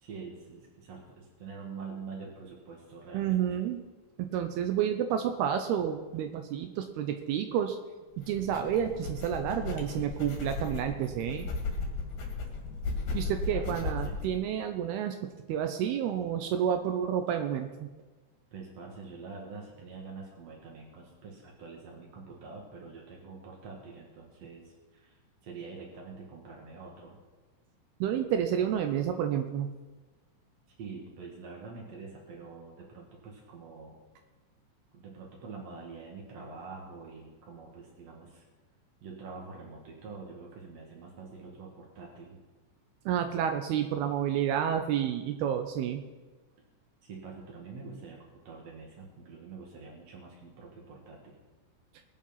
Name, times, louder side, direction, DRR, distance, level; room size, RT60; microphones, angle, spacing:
voice 1, 0.0-3.6 13.5-14.2 18.5-27.2 30.8-34.0 34.9-38.4 39.0-42.4 47.0-51.4, right 4 dB, 55° right, -2 dB, 2.0 m, -46 dB
voice 2, 3.1-3.8 4.2-7.8 8.2-11.5 13.1-17.9 28.0-29.7 43.1-46.0, right 9 dB, 80° right, 7 dB, 2.3 m, -30 dB
sound 1, 8.2-14.3, left 3 dB, 55° left, 3.5 m, -36 dB
21.5 x 7.5 x 5.8 m, 1.2 s
omnidirectional pair, 5.3 m